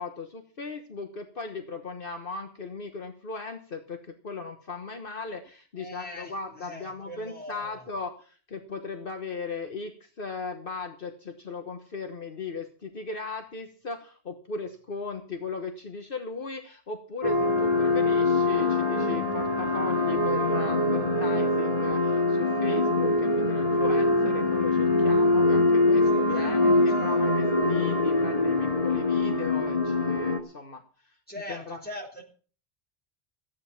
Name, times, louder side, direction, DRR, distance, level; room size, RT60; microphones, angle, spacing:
voice 1, 0.0-31.2 31.5-31.8, left 4 dB, 60° left, 6 dB, 1.5 m, -37 dB
voice 2, 5.8-7.9 25.9-27.5 31.3-32.2, left 1 dB, 10° left, 0 dB, 3.7 m, -42 dB
sound 1, 17.2-30.4, left 2 dB, 35° left, 2.0 m, -23 dB
15.0 x 10.0 x 5.9 m, 0.41 s
omnidirectional pair, 1.1 m